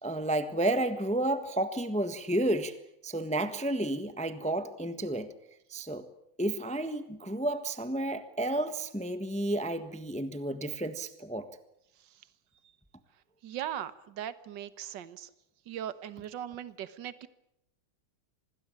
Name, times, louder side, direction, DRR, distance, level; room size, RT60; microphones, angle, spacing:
voice 1, 0.0-2.7 3.0-5.3 5.7-6.0 6.4-11.5, right 1 dB, 5° left, 10 dB, 1.0 m, -31 dB
voice 2, 13.4-15.3 15.7-17.3, right 10 dB, 60° right, 14 dB, 1.8 m, -39 dB
26.0 x 20.0 x 8.8 m, 0.80 s
omnidirectional pair, 2.3 m